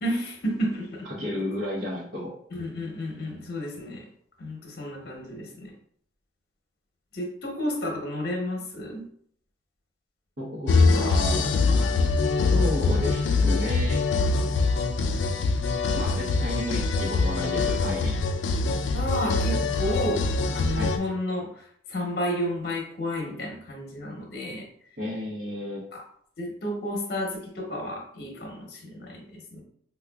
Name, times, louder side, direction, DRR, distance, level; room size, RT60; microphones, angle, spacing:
voice 1, 0.0-0.9 2.5-4.0 4.4-5.7 7.1-9.0 18.9-20.2 20.5-24.6 26.4-29.6, equal, 55° left, 0 dB, 0.8 m, -31 dB
voice 2, 1.1-2.3 10.4-11.8 12.5-14.0 16.0-18.2 20.8-20.9 25.0-25.8, left 1 dB, 55° right, -7 dB, 0.8 m, -32 dB
sound 1, 10.7-21.0, left 3 dB, 85° left, 0.3 m, -24 dB
4.8 x 2.2 x 2.2 m, 0.65 s
head